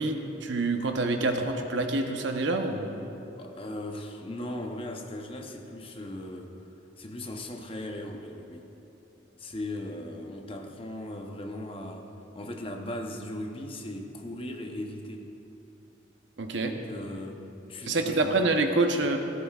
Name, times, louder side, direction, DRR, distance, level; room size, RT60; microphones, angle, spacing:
voice 1, 0.0-2.9 16.4-16.7 17.8-19.2, right 2 dB, 70° right, 4 dB, 0.9 m, -26 dB
voice 2, 3.4-6.6 7.0-8.7 9.4-15.3 16.6-18.4, left 1 dB, 30° left, 3 dB, 0.8 m, -38 dB
14.5 x 13.5 x 2.4 m, 3.0 s
head